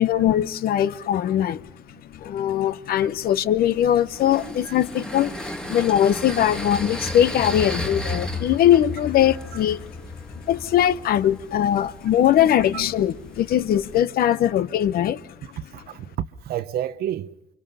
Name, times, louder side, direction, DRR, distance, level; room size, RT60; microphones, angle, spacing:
voice 1, 0.0-1.6 2.1-9.9 10.4-15.2, left 11 dB, 60° left, 0.9 m, -21 dB
sound 1, 3.6-14.1, left 1 dB, 5° left, 1.6 m, -34 dB
voice 2, 15.4-16.1 16.4-17.3, right 11 dB, 65° right, 0.8 m, -31 dB
29.0 x 24.0 x 5.6 m
cardioid pair, 110°, 17 cm